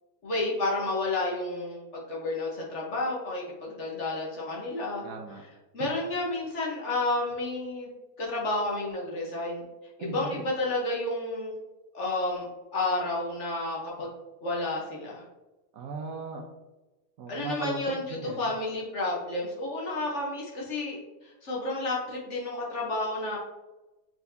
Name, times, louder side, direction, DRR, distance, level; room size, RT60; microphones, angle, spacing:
voice 1, 0.2-5.0 5.7-7.9 8.2-9.6 10.0-11.5 11.9-12.5 12.7-14.1 14.4-15.2 17.3-18.0 18.4-23.4, left 2 dB, 50° left, -3 dB, 1.2 m, -31 dB
voice 2, 5.0-5.4 10.0-10.4 15.7-16.5 17.2-18.5, right 4 dB, 70° right, 2 dB, 1.0 m, -37 dB
4.5 x 4.3 x 2.7 m, 1.1 s
omnidirectional pair, 1.8 m